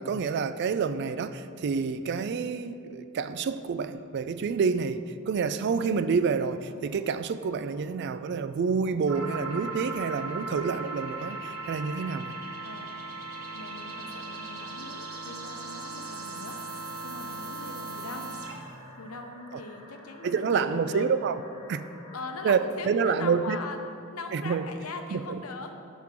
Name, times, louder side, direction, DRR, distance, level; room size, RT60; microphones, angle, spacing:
voice 1, 0.0-12.3 20.2-21.4 21.7-21.8 22.4-22.6 22.9-23.6 24.3-24.6 25.1-25.4, right 5 dB, 50° right, 12 dB, 0.3 m, -28 dB
sound 1, 4.9-22.5, left 1 dB, 20° left, 1.5 m, -53 dB
sound 2, 9.1-18.8, right 3 dB, 75° right, 1.1 m, -38 dB
voice 2, 12.6-13.0 13.5-16.6 17.0-18.3 19.0-21.1 22.1-23.8 24.1-25.7, left 3 dB, 70° left, 5 dB, 0.8 m, -40 dB
10.5 x 3.7 x 5.9 m, 2.5 s
head